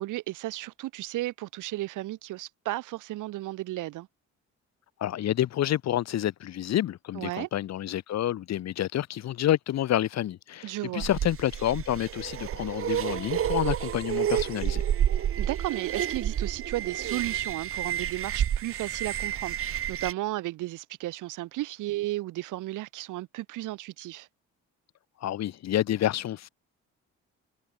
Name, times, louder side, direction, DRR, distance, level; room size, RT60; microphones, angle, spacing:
voice 1, 0.0-4.1 7.1-7.5 10.6-11.1 15.4-24.3, right 17 dB, 85° right, 1.2 m, -34 dB
voice 2, 5.0-14.8 25.2-26.5, left 12 dB, 60° left, 0.9 m, -28 dB
sound 1, 11.0-20.1, right 10 dB, 45° right, 0.8 m, -30 dB
cardioid pair, 90°, 30 cm